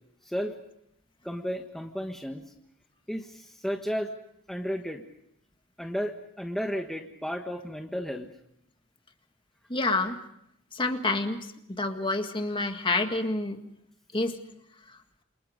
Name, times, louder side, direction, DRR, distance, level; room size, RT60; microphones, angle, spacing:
voice 1, 0.2-0.6 1.2-2.5 3.1-4.1 4.5-5.0 5.8-8.3, equal, ahead, 3 dB, 1.4 m, -33 dB
voice 2, 9.7-10.2 10.7-11.5 11.8-13.6 14.1-14.4 14.9-15.0, left 2 dB, 25° left, 6 dB, 1.8 m, -28 dB
28.5 x 27.5 x 5.2 m, 0.76 s
head